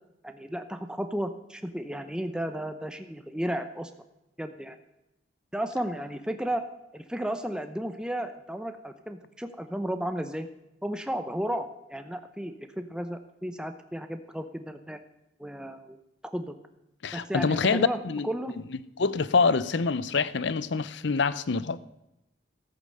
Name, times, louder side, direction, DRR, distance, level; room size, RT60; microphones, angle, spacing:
voice 1, 0.2-3.9 4.4-4.8 5.5-6.7 6.9-10.5 10.8-15.0 15.4-16.0 16.2-16.5 17.1-18.5, right 1 dB, 5° right, 0.7 m, -33 dB
voice 2, 17.0-18.3 19.0-21.8, left 4 dB, 70° left, 0.6 m, -25 dB
14.5 x 8.9 x 6.5 m
head